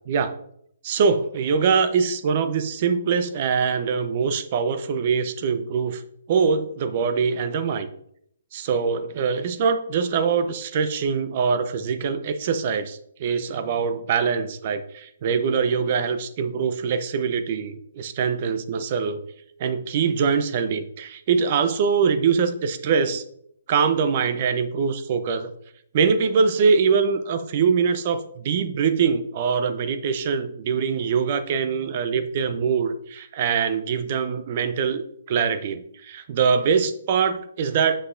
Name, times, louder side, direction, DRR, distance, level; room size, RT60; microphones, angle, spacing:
voice 1, 0.1-0.4 0.8-6.0 6.3-7.9 8.5-19.2 19.6-23.2 23.7-25.5 25.9-35.0 35.3-38.0, right 6 dB, 45° right, 10 dB, 0.6 m, -23 dB
7.5 x 6.2 x 2.5 m, 0.70 s
hypercardioid pair, 140°, 0 cm